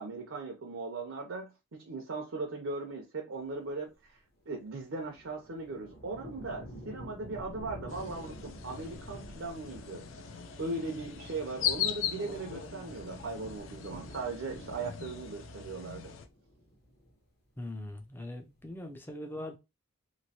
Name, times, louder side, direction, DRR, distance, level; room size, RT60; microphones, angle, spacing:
voice 1, 0.0-3.9 4.5-10.1 10.6-16.1, right 3 dB, 70° right, 0.6 m, -38 dB
sound 1, 4.5-17.3 17.6-18.3, equal, 45° left, 1.0 m, -50 dB
sound 2, 7.9-16.3, left 9 dB, 70° left, 0.4 m, -39 dB
voice 2, 17.6-19.6, left 1 dB, 10° left, 0.4 m, -41 dB
3.0 x 2.6 x 2.8 m
head